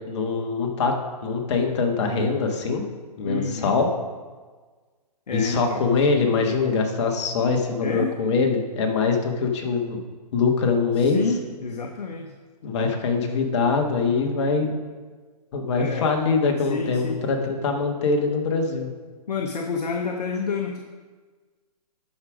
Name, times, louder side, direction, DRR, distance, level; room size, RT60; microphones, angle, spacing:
voice 1, 0.1-0.9 1.2-2.8 3.2-3.9 5.3-10.0 10.3-11.2 12.6-14.8 15.5-18.9, left 4 dB, 45° left, 3 dB, 1.5 m, -23 dB
voice 2, 3.2-3.8 5.3-5.8 7.8-8.1 11.0-12.4 15.7-16.1 16.7-17.2 19.3-20.8, left 5 dB, 75° left, 3 dB, 0.9 m, -29 dB
11.5 x 5.1 x 5.0 m, 1.4 s
hypercardioid pair, 145°, 21 cm